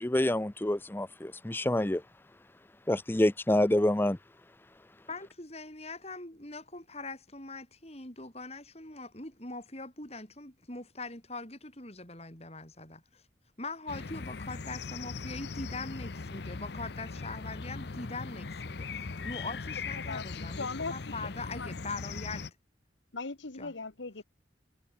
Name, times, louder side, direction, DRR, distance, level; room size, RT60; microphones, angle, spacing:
voice 1, 0.0-2.0 2.9-4.2, left 1 dB, 10° left, 0.5 m, -27 dB
voice 2, 5.1-13.2 13.6-22.5 23.6-23.7, left 3 dB, 35° left, 6.0 m, -42 dB
sound 1, 13.9-22.5, left 4 dB, 60° left, 0.7 m, -39 dB
voice 3, 20.6-21.0 21.5-21.7 23.1-24.2, left 3 dB, 80° left, 1.4 m, -38 dB
head